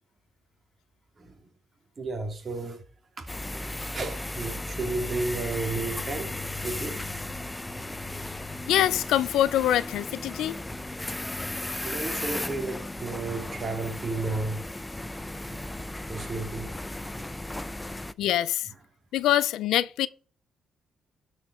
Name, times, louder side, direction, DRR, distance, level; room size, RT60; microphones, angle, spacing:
voice 1, 2.0-2.8 3.2-3.3 3.9-6.4 6.6-7.0 11.8-14.7 15.4-15.7 16.1-16.7 17.0-17.3 17.8-18.0, right 3 dB, 35° right, 2.8 m, -33 dB
sound 1, 3.3-18.1, left 1 dB, 10° left, 0.6 m, -35 dB
voice 2, 8.7-10.6 18.2-18.7 19.1-20.1, left 12 dB, 85° left, 0.5 m, -24 dB
12.5 x 5.2 x 5.1 m
cardioid pair, 90°, 0 cm